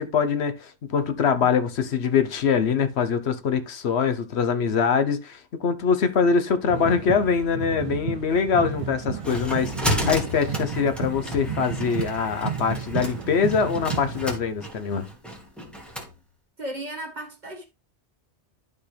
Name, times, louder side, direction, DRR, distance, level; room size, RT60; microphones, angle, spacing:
voice 1, 0.0-15.1, left 6 dB, 70° left, 1.1 m, -23 dB
sound 1, 6.7-14.4, right 6 dB, 65° right, 0.3 m, -33 dB
sound 2, 8.7-16.1, equal, ahead, 1.7 m, -32 dB
voice 2, 16.6-17.7, right 1 dB, 40° right, 1.8 m, -35 dB
11.5 x 4.5 x 3.3 m
omnidirectional pair, 1.1 m